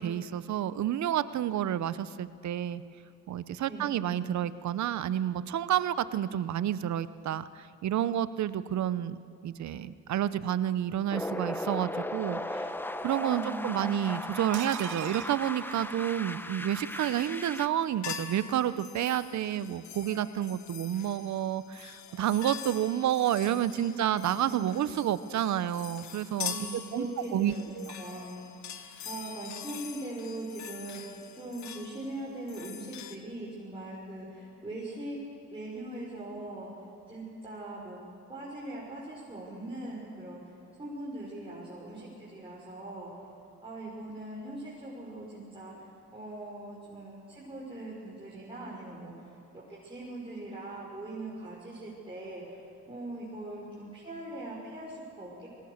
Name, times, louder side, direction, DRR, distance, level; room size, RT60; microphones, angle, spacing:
voice 1, 0.0-2.8 3.3-12.7 13.0-26.6 26.9-27.9, right 11 dB, 65° right, 15 dB, 0.9 m, -30 dB
voice 2, 3.7-4.0 13.3-14.0 23.8-24.0 24.4-25.1 26.4-27.7 28.0-28.4 29.0-35.2 35.5-38.0 38.3-43.3 43.6-52.6 52.9-55.5, right 2 dB, 15° right, -6 dB, 5.9 m, -41 dB
sound 1, 11.1-17.7, left 1 dB, 5° left, 1.1 m, -37 dB
sound 2, 14.5-16.5 16.8-16.9 17.2-17.3, right 17 dB, 85° right, 0.6 m, -43 dB
sound 3, 16.9-17.7 18.0-33.2, left 9 dB, 70° left, 1.7 m, -44 dB
27.5 x 20.5 x 6.7 m, 2.7 s
cardioid pair, 90°, 30 cm